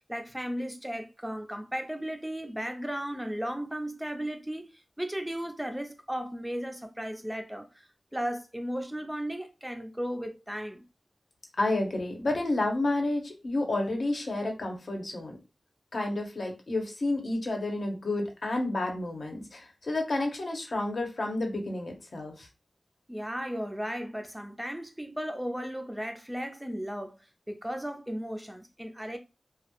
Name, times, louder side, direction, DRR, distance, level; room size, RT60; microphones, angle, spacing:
voice 1, 0.1-7.7 8.1-10.8 23.1-27.2 27.5-29.2, equal, 10° right, 0.4 m, -35 dB
voice 2, 11.6-15.4 15.9-22.5, left 2 dB, 70° left, 0.7 m, -30 dB
2.2 x 2.0 x 2.8 m
wide cardioid pair, 70°, 0 cm